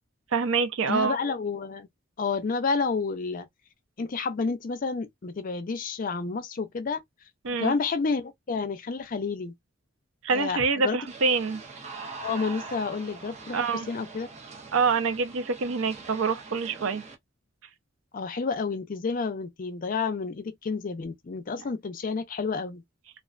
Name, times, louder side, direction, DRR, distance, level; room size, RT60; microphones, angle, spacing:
voice 1, 0.3-1.1 7.4-7.7 10.2-11.6 13.5-13.9 14.7-17.0, right 4 dB, 85° right, 0.5 m, -26 dB
voice 2, 0.9-1.9 2.2-3.5 4.0-7.0 7.6-9.5 10.3-11.0 12.2-14.3 18.1-22.8, left 4 dB, 45° left, 0.5 m, -30 dB
sound 1, 11.1-17.2, right 4 dB, 35° right, 0.6 m, -43 dB
2.3 x 2.2 x 2.4 m
head